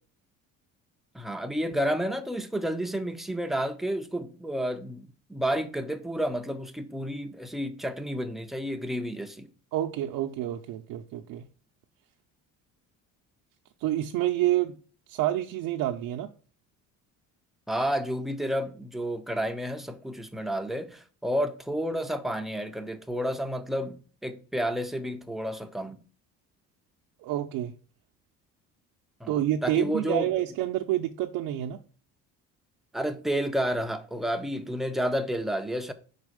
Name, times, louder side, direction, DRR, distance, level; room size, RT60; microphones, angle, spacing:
voice 1, 1.1-9.5 17.7-26.0 29.2-29.4 29.6-30.3 32.9-35.9, equal, ahead, 0.4 m, -30 dB
voice 2, 9.7-11.4 13.8-14.7 15.1-16.3 27.2-27.7 29.3-31.8, right 13 dB, 80° right, 0.6 m, -28 dB
5.3 x 4.1 x 4.9 m
cardioid pair, 155°, 33 cm